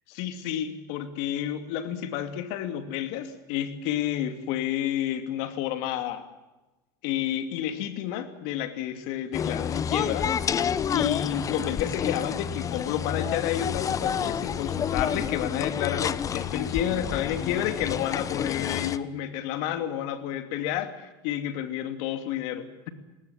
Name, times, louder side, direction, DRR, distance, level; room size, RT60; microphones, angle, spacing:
voice 1, 0.1-6.3 7.0-10.3 10.9-22.9, left 10 dB, 70° left, 10 dB, 2.7 m, -30 dB
sound 1, 9.3-19.0, left 8 dB, 30° left, 1.0 m, -29 dB
20.5 x 19.0 x 8.6 m, 1.1 s
supercardioid pair, 110°, 11 cm